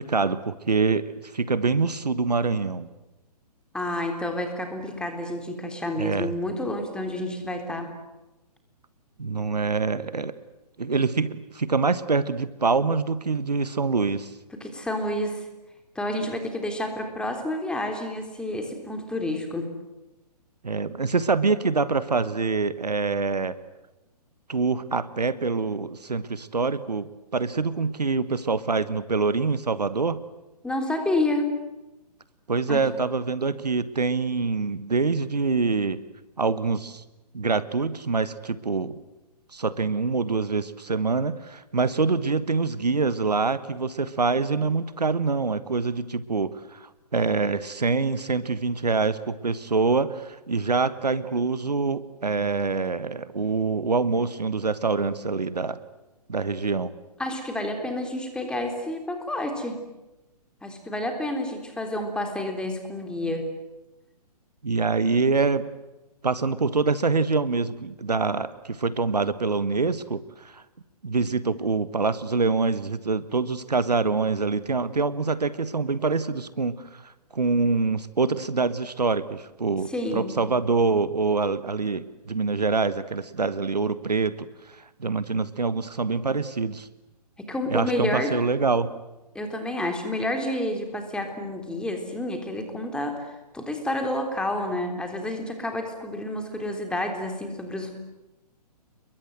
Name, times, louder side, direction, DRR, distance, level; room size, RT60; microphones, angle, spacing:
voice 1, 0.0-2.9 6.0-6.3 9.2-10.3 10.8-14.3 20.6-23.5 24.5-30.2 32.5-36.0 36.4-37.0 37.3-39.0 39.5-55.8 56.3-56.9 64.6-65.7 66.2-70.6 71.0-86.9 87.7-88.9, right 4 dB, 80° right, 14 dB, 1.4 m, -25 dB
voice 2, 3.7-7.9 14.5-15.5 16.0-19.7 30.6-31.6 32.7-32.9 57.2-59.8 60.6-63.5 79.9-80.4 87.4-88.4 89.4-97.9, left 1 dB, 5° left, 4 dB, 3.5 m, -29 dB
29.0 x 22.5 x 8.0 m, 1.0 s
figure-of-eight pair, 125°, 21 cm